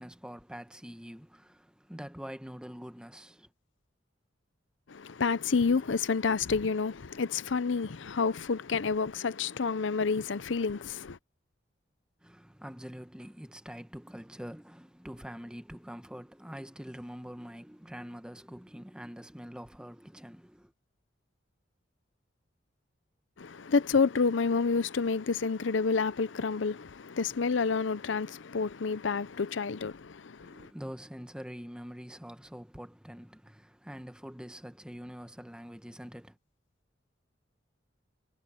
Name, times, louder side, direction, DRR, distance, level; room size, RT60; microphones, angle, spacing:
voice 1, 0.0-3.5 12.2-20.7 30.4-36.4, equal, 5° right, 1.1 m, -45 dB
voice 2, 4.9-11.2 23.4-30.7, left 5 dB, 80° left, 0.7 m, -29 dB
head